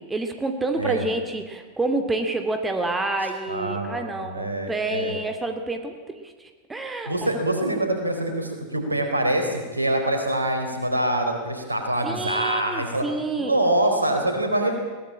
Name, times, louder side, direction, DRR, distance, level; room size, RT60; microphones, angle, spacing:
voice 1, 0.0-7.1 12.0-13.6, right 2 dB, 10° right, 6 dB, 2.4 m, -28 dB
voice 2, 3.5-5.1 7.1-13.1 13.4-14.7, right 1 dB, 80° right, 5 dB, 4.1 m, -25 dB
21.5 x 18.5 x 8.8 m, 1.4 s
figure-of-eight pair, 90°, 0 cm